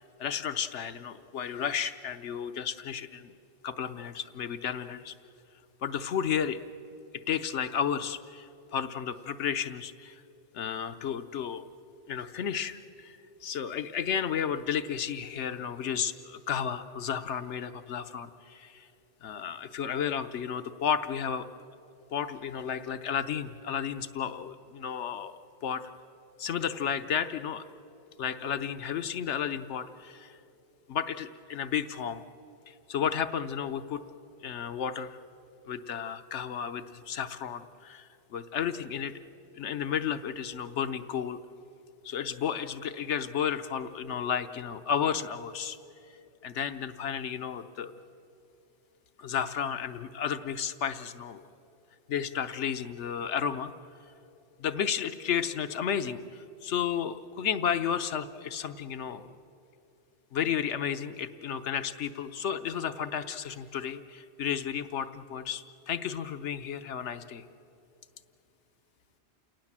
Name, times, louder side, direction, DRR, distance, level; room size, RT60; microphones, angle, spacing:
voice 1, 0.0-3.3 3.6-5.1 5.8-6.6 7.3-10.2 10.5-11.6 12.1-18.9 19.2-21.4 22.1-25.9 26.4-27.6 28.2-30.4 30.9-32.2 32.7-34.0 34.4-35.2 35.7-39.1 39.6-41.4 42.0-45.8 46.4-47.9 49.2-51.4 52.1-53.7 54.6-59.3 60.3-67.4, left 8 dB, 90° left, 10 dB, 1.1 m, -32 dB
29.0 x 18.0 x 7.4 m, 2.9 s
omnidirectional pair, 1.2 m